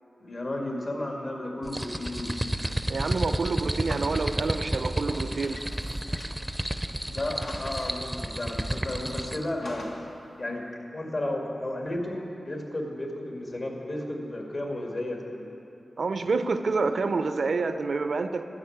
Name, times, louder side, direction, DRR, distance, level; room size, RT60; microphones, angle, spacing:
voice 1, 0.2-2.3 7.1-10.0 10.4-10.6 10.9-12.2 12.5-15.5, left 1 dB, 60° left, 0 dB, 2.0 m, -33 dB
sound 1, 1.6-9.5, right 1 dB, 10° right, 0.5 m, -31 dB
voice 2, 2.9-5.7 16.0-18.5, right 4 dB, 75° right, 9 dB, 0.5 m, -28 dB
sound 2, 3.9-6.6 6.9-7.0 7.2-8.3 8.9-10.2, left 2 dB, 80° left, 1.1 m, -44 dB
12.5 x 5.7 x 8.6 m, 3.0 s
cardioid pair, 50°, 0 cm